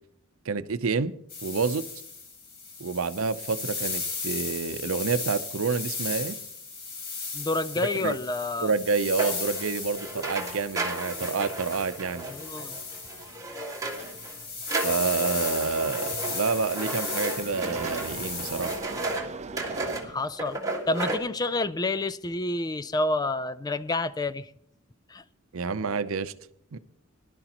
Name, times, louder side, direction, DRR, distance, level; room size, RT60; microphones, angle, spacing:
voice 1, 0.5-1.1 1.4-1.8 2.8-6.4 8.0-8.2 8.6-12.3 14.8-18.8 25.5-26.3 26.7-26.8, right 4 dB, 90° right, 0.7 m, -28 dB
sound 1, 1.3-18.8, left 4 dB, 55° left, 3.6 m, -36 dB
voice 2, 7.3-8.7 12.3-12.8 20.0-20.6 20.9-24.5 25.1-25.2, left 2 dB, 20° left, 0.4 m, -29 dB
sound 2, 9.2-14.4 14.6-19.3 19.6-20.0 20.4-21.2, right 2 dB, 15° right, 1.8 m, -33 dB
sound 3, 9.9-20.7 21.4-21.5, right 4 dB, 35° right, 0.5 m, -44 dB
20.0 x 11.5 x 3.0 m
head